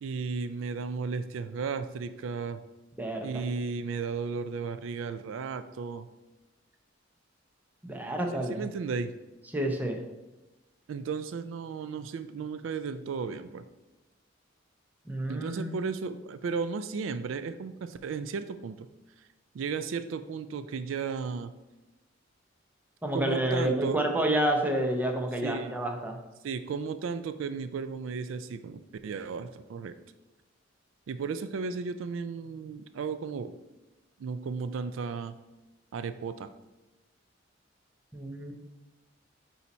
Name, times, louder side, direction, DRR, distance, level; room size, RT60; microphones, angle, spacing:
voice 1, 0.0-2.6 3.2-6.1 8.5-9.1 10.9-13.6 15.3-18.9 19.5-21.5 23.1-24.0 25.4-25.8 26.4-29.9 31.1-33.5 34.2-35.3 35.9-36.5, right 5 dB, 80° right, 11 dB, 0.3 m, -34 dB
voice 2, 3.0-3.5 7.8-8.6 9.5-10.0 15.1-15.7 23.0-26.2 38.1-38.5, right 1 dB, 10° right, 2 dB, 0.7 m, -29 dB
8.2 x 2.8 x 4.3 m, 1.0 s
head